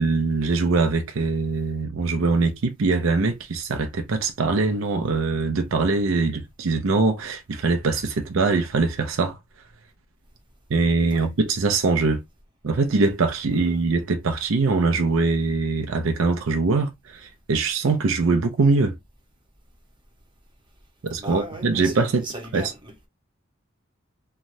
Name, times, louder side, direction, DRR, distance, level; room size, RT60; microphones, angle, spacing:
voice 1, 0.0-9.4 10.7-12.2 12.6-18.9 21.0-22.3 22.5-22.7, right 3 dB, 75° right, 0.5 m, -22 dB
voice 2, 21.2-23.1, right 1 dB, 25° right, 1.0 m, -37 dB
3.0 x 2.2 x 2.6 m
head